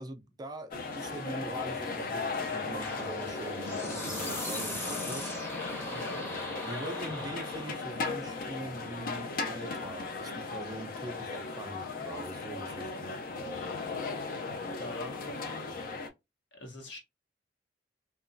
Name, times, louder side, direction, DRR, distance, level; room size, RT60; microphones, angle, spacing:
voice 1, 0.0-5.3 6.7-13.1, right 2 dB, 20° right, 0.3 m, -43 dB
sound 1, 0.7-16.1, left 4 dB, 50° left, 0.4 m, -37 dB
sound 2, 2.8-7.9, left 1 dB, 15° left, 0.7 m, -38 dB
voice 2, 5.9-6.2 14.8-15.7 16.5-17.0, left 1 dB, 75° left, 1.0 m, -43 dB
2.8 x 2.3 x 2.5 m
head